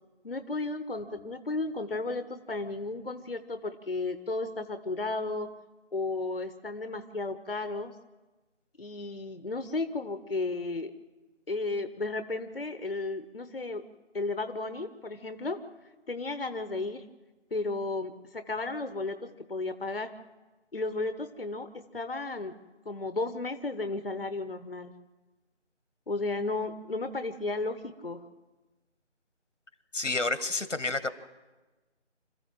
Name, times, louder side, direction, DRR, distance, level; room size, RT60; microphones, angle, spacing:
voice 1, 0.2-5.5 5.9-7.9 8.8-10.9 11.5-13.8 14.1-15.6 16.1-17.0 17.5-20.1 20.7-22.5 22.8-24.9 26.1-28.3, left 3 dB, 50° left, 10 dB, 1.0 m, -34 dB
voice 2, 29.9-31.1, left 3 dB, 85° left, 13 dB, 1.5 m, -29 dB
26.5 x 14.0 x 7.6 m, 1.2 s
figure-of-eight pair, 175°, 36 cm